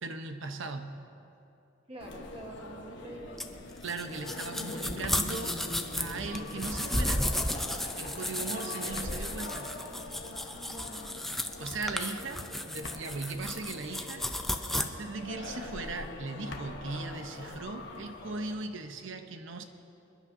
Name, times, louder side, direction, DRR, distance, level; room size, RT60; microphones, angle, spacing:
voice 1, 0.0-1.0 3.8-5.7 6.0-7.4 8.0-9.7 11.6-14.5 14.7-19.6, right 3 dB, 65° right, 7 dB, 0.8 m, -38 dB
voice 2, 1.9-3.7 10.5-11.3, right 1 dB, 25° right, 0 dB, 1.2 m, -47 dB
sound 1, 2.0-18.6, left 2 dB, 60° left, 1.1 m, -43 dB
sound 2, 3.4-14.8, left 1 dB, ahead, 0.4 m, -34 dB
Laughter, 4.5-10.5, left 1 dB, 40° left, 2.6 m, -44 dB
27.5 x 10.5 x 2.6 m, 2.8 s
head